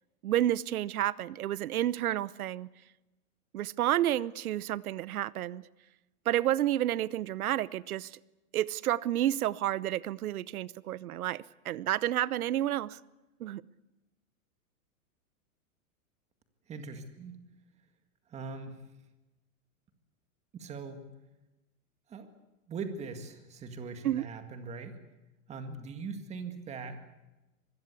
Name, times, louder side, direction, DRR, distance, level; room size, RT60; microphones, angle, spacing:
voice 1, 0.2-2.7 3.5-5.6 6.3-8.2 8.5-13.0 13.4-13.6 24.0-24.3, right 13 dB, 90° right, 0.9 m, -30 dB
voice 2, 16.7-17.4 18.3-18.8 20.5-21.1 22.1-22.3 22.7-25.0 25.5-27.1, right 4 dB, 15° right, 1.9 m, -41 dB
25.5 x 21.0 x 8.4 m
supercardioid pair, 165°, 42 cm